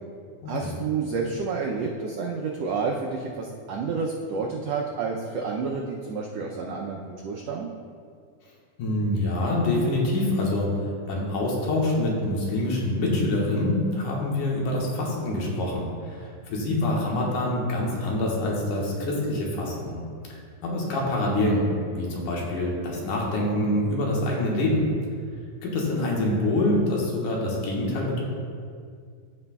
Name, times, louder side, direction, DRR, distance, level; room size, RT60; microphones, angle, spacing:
voice 1, 0.5-7.7, right 4 dB, 85° right, -1 dB, 1.4 m, -30 dB
voice 2, 8.8-10.7 11.1-20.0 20.6-24.8 25.6-28.2, left 1 dB, 80° left, -3 dB, 2.8 m, -25 dB
15.0 x 6.0 x 2.3 m, 2.1 s
omnidirectional pair, 3.6 m